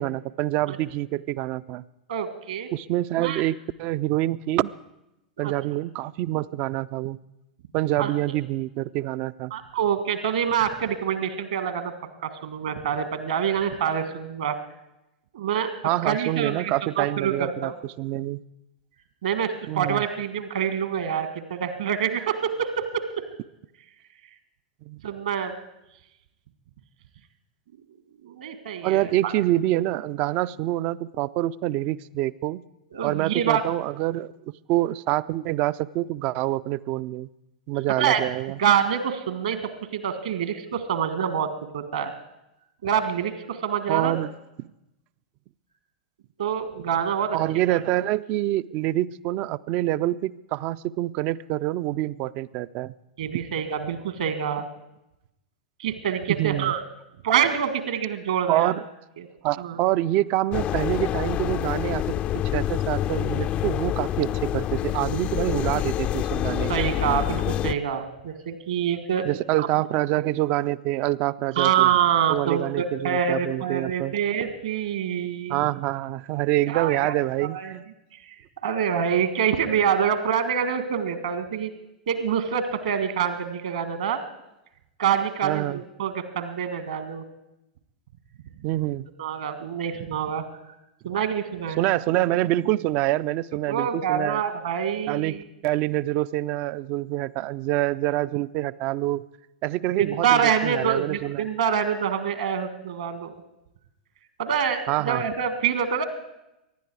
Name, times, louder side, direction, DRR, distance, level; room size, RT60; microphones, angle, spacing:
voice 1, 0.0-1.8 2.7-4.7 5.4-7.2 7.7-9.5 15.8-18.4 19.7-20.0 24.9-25.0 28.8-32.6 33.0-34.3 34.7-37.3 37.7-38.6 43.9-44.3 44.6-44.7 47.3-52.9 56.4-56.7 58.5-58.8 59.4-62.1 62.5-66.7 69.2-71.9 72.3-74.2 75.5-77.8 85.4-85.8 88.6-89.1 91.8-94.4 95.1-95.4 95.6-99.2 99.6-101.5 104.9-105.3, right 16 dB, 40° right, 17 dB, 0.4 m, -26 dB
voice 2, 2.1-2.7 3.2-3.4 5.4-5.5 8.0-8.1 9.5-11.9 12.2-14.6 15.3-15.7 16.0-17.7 19.2-23.0 25.0-25.5 28.2-29.3 32.9-33.6 38.0-38.2 38.6-39.6 39.9-42.1 42.8-44.2 46.4-47.4 47.7-47.8 53.2-54.7 55.8-56.8 57.2-58.7 59.2-59.3 59.6-59.8 66.7-69.3 69.6-69.7 71.6-75.6 76.7-77.1 77.5-77.7 78.6-81.7 82.1-84.2 85.0-87.2 89.2-90.4 91.0-91.8 93.7-95.4 100.0-103.3 104.4-106.0, right 8 dB, 60° right, 11 dB, 1.6 m, -26 dB
sound 1, 60.5-67.7, left 12 dB, 30° left, 0.5 m, -27 dB
23.5 x 11.0 x 4.7 m, 0.91 s
figure-of-eight pair, 95°, 4 cm